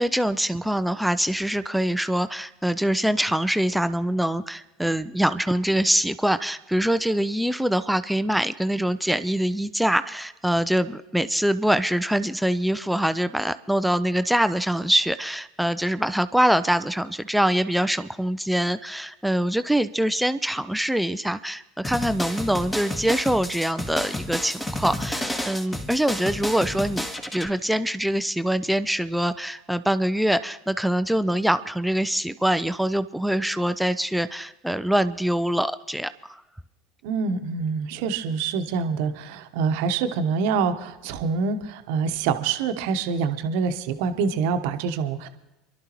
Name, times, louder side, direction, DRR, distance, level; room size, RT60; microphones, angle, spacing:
voice 1, 0.0-27.1 27.3-36.4, right 1 dB, ahead, 12 dB, 0.5 m, -24 dB
sound 1, 21.8-27.5, left 1 dB, 15° left, 1.7 m, -31 dB
voice 2, 37.0-45.3, right 5 dB, 65° right, 8 dB, 1.0 m, -26 dB
28.5 x 11.5 x 3.0 m, 0.99 s
hypercardioid pair, 75°, 0 cm